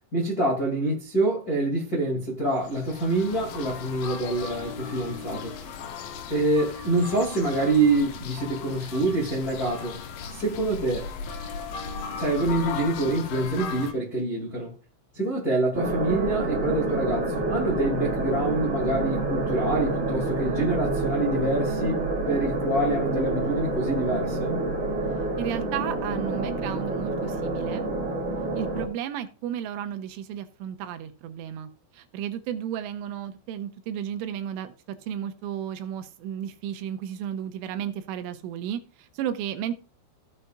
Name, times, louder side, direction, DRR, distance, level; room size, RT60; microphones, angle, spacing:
voice 1, 0.1-5.7 6.3-10.0 10.3-11.1 12.1-14.7 15.1-24.6, right 2 dB, 40° left, 1.3 m, -26 dB
sound 1, 2.5-13.9, left 6 dB, 80° left, 2.1 m, -37 dB
sound 2, 15.7-28.9, right 2 dB, 35° right, 2.4 m, -28 dB
voice 2, 25.4-27.9 28.6-39.7, right 9 dB, 85° right, 3.2 m, -33 dB
16.0 x 6.7 x 2.4 m
omnidirectional pair, 5.9 m